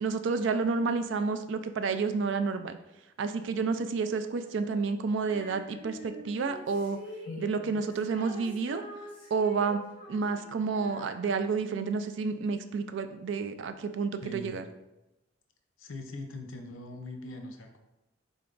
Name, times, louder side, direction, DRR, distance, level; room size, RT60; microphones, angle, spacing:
voice 1, 0.0-2.8 3.2-7.0 7.4-8.8 9.3-9.8 10.1-14.6, right 4 dB, 60° right, 9 dB, 0.3 m, -30 dB
Female singing, 5.2-11.7, equal, 25° left, 1.6 m, -46 dB
voice 2, 7.3-7.8 14.2-14.6 15.8-17.8, left 2 dB, 80° left, 5 dB, 0.6 m, -42 dB
3.9 x 3.4 x 3.8 m, 0.96 s
head